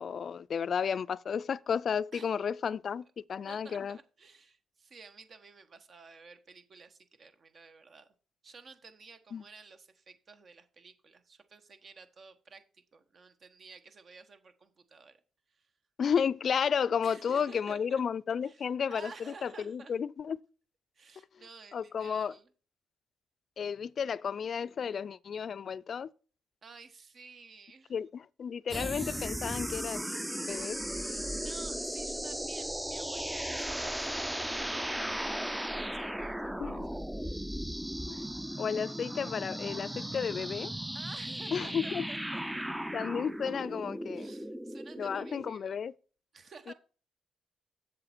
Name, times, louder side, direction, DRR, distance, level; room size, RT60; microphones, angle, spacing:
voice 1, 0.0-4.0 9.3-9.4 16.0-20.4 21.7-22.3 23.6-26.1 27.9-30.1 30.4-30.8 36.6-36.9 38.1-38.3 38.6-40.7 41.5-42.1 42.9-44.3 45.0-45.9 46.7-46.8, left 7 dB, 55° left, 0.4 m, -33 dB
voice 2, 3.5-8.1 8.4-15.2 15.5-15.7 17.0-18.0 18.5-19.9 20.9-22.5 26.6-27.9 31.0-36.8 37.2-37.4 40.9-42.7 44.1-45.8 46.3-46.7, right 4 dB, 50° right, 1.2 m, -53 dB
sound 1, 28.7-45.5, equal, 5° right, 0.5 m, -36 dB
7.7 x 6.8 x 4.3 m
cardioid pair, 70°, 0 cm